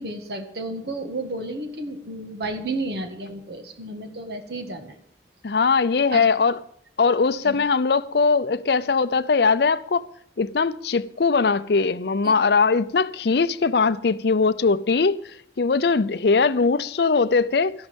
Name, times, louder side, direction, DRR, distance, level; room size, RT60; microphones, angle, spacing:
voice 1, 0.0-4.9 6.1-6.3 7.4-7.6 12.2-12.3, right 2 dB, 60° right, 1.8 m, -32 dB
voice 2, 5.4-6.6 7.0-10.0 10.4-17.7, left 4 dB, 60° left, 0.5 m, -21 dB
13.0 x 11.5 x 5.3 m
head